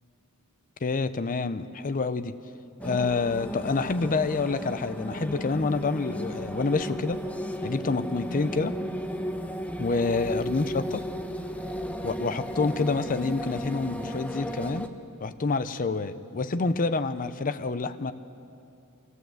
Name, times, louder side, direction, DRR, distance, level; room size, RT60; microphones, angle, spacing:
voice 1, 0.8-2.4 2.8-7.2 7.6-8.8 9.8-11.0 12.0-14.9 15.2-18.1, left 3 dB, 40° left, 10 dB, 0.6 m, -27 dB
sound 1, 2.8-14.9, equal, 5° left, 0.8 m, -34 dB
22.5 x 16.5 x 7.8 m, 2.7 s
head